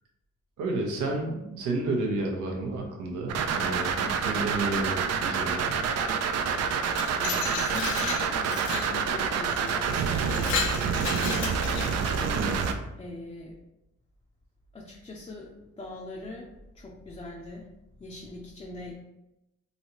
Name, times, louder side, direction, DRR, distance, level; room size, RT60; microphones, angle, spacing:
voice 1, 0.6-5.8 12.3-12.7, right 2 dB, 85° right, 1 dB, 0.8 m, -31 dB
sound 1, 3.3-12.7, right 6 dB, 60° right, 0.4 m, -28 dB
Glass, 6.7-8.9 9.6-9.7 10.1-12.2, left 5 dB, 75° left, 0.6 m, -33 dB
voice 2, 7.1-11.6 13.0-13.5 14.7-17.7 18.0-18.9, left 2 dB, 20° left, -3 dB, 0.5 m, -41 dB
3.2 x 2.6 x 2.9 m, 0.92 s
cardioid pair, 90°, 30 cm